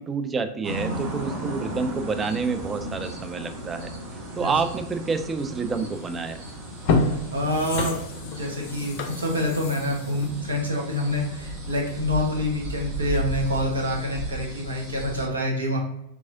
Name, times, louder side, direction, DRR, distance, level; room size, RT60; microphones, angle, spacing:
voice 1, 0.0-3.9 4.4-6.4, right 4 dB, 20° right, 8 dB, 0.3 m, -28 dB
sound 1, 0.6-15.3, equal, 45° right, 1.1 m, -35 dB
sound 2, 6.1-6.2 6.7-11.4 11.8-11.9, left 3 dB, 45° left, 0.5 m, -29 dB
voice 2, 7.0-7.9 8.2-15.8, left 1 dB, 75° right, -1 dB, 1.0 m, -27 dB
3.6 x 3.1 x 2.5 m, 0.81 s
figure-of-eight pair, 90°, 0 cm